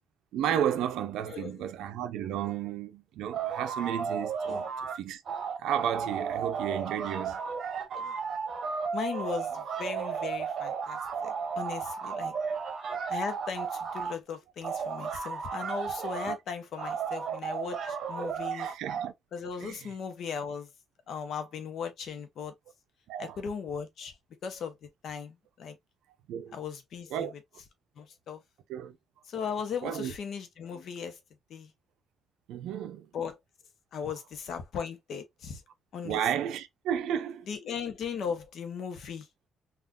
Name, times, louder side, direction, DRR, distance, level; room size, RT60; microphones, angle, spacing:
voice 1, 0.3-4.7 4.9-5.2 5.6-7.4 16.3-16.4 18.5-19.1 19.6-19.9 23.1-23.4 26.3-26.6 27.1-27.3 28.7-28.9 29.8-30.1 32.5-33.1 36.0-37.5, right 9 dB, 85° right, 0.4 m, -33 dB
sound 1, 3.3-5.0 5.3-14.2 14.6-16.4 16.8-19.1, right 6 dB, 60° right, 0.8 m, -34 dB
voice 2, 8.9-12.3 13.1-18.7 19.3-20.7 21.1-22.5 23.2-24.1 24.4-24.7 25.0-25.8 26.5-27.3 28.0-28.4 29.3-31.1 31.5-31.7 33.1-33.4 33.9-35.6 35.9-36.2 37.5-39.2, left 6 dB, 65° left, 0.7 m, -37 dB
3.5 x 2.4 x 2.3 m
cardioid pair, 90°, 0 cm